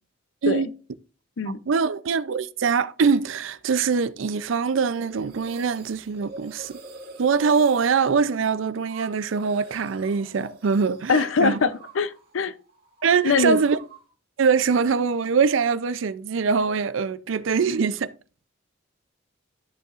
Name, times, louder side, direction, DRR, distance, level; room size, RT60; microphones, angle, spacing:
voice 1, 1.7-6.8 7.2-11.6 13.0-13.8 14.4-18.1, right 5 dB, 80° right, 0.5 m, -23 dB
sound 1, 4.9-12.3 12.6-14.1, right 3 dB, 50° right, 2.5 m, -45 dB
voice 2, 11.1-12.5 13.2-13.6, left 4 dB, 80° left, 0.6 m, -22 dB
13.0 x 5.5 x 2.5 m
head